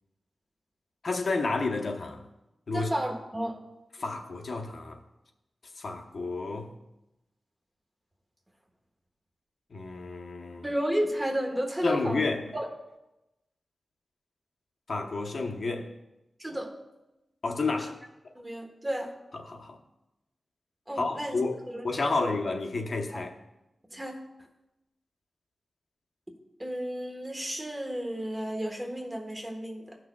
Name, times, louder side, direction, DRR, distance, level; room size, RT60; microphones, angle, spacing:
voice 1, 1.0-2.2 2.7-2.9 4.0-5.0 5.8-6.7 9.7-10.7 11.8-12.4 14.9-15.9 17.4-18.0 19.4-19.8 21.0-21.6 21.8-23.3, left 3 dB, 60° left, 0.9 m, -30 dB
voice 2, 2.7-3.6 10.6-12.7 16.4-16.7 17.7-17.9 18.3-19.1 20.9-21.4 21.7-21.8 22.2-22.3 23.1-23.2 23.9-24.2 26.6-30.0, equal, 15° right, 1.3 m, -32 dB
14.5 x 6.2 x 2.3 m
wide cardioid pair, 100°, 0 cm